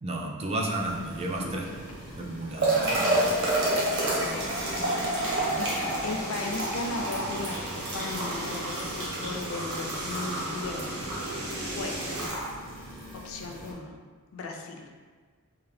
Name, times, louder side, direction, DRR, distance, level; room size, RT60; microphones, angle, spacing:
voice 1, 0.0-1.7 2.2-3.2, right 1 dB, 25° right, 0 dB, 0.3 m, -32 dB
sound 1, 0.8-13.7, right 1 dB, 55° right, 1.0 m, -31 dB
voice 2, 1.7-2.2 3.2-5.2 5.6-11.0 11.6-12.0 13.2-14.0 14.3-14.9, left 3 dB, 65° left, 2 dB, 0.4 m, -38 dB
sound 2, 2.7-12.3, right 1 dB, 85° right, 0.9 m, -37 dB
3.7 x 2.5 x 3.3 m, 1.5 s
head